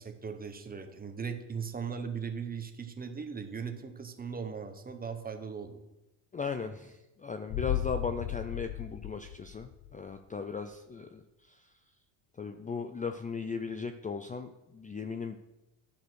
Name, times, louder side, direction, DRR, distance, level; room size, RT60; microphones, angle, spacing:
voice 1, 0.0-5.8, right 6 dB, 20° right, 6 dB, 1.3 m, -38 dB
voice 2, 6.3-11.2 11.5-11.6 12.4-15.4, left 5 dB, 20° left, 8 dB, 0.5 m, -37 dB
sound 1, 7.5-10.2 10.5-10.6, left 14 dB, 65° left, 0.8 m, -36 dB
10.0 x 6.5 x 6.4 m, 0.97 s
cardioid pair, 110°, 45 cm